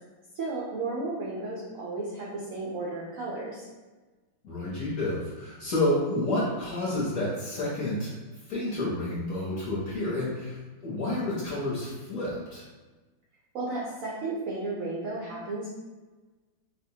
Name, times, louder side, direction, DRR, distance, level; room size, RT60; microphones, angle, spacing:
voice 1, 0.3-3.7 13.5-15.7, right 3 dB, 80° right, -4 dB, 0.7 m, -33 dB
voice 2, 4.4-8.1 8.5-10.6 10.8-12.7, left 1 dB, 55° left, -6 dB, 1.0 m, -29 dB
4.5 x 2.1 x 2.7 m, 1.3 s
omnidirectional pair, 2.1 m